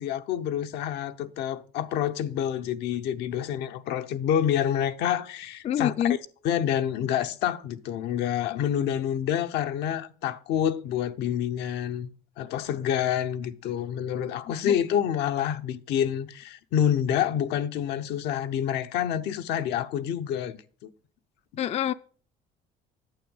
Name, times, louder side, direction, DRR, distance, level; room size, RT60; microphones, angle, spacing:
voice 1, 0.0-5.9 6.4-12.1 12.4-20.9, left 9 dB, 85° left, 0.8 m, -28 dB
voice 2, 5.6-6.2 14.6-14.8 21.6-21.9, left 10 dB, 40° left, 0.4 m, -26 dB
9.1 x 7.1 x 5.3 m
cardioid pair, 110°, 17 cm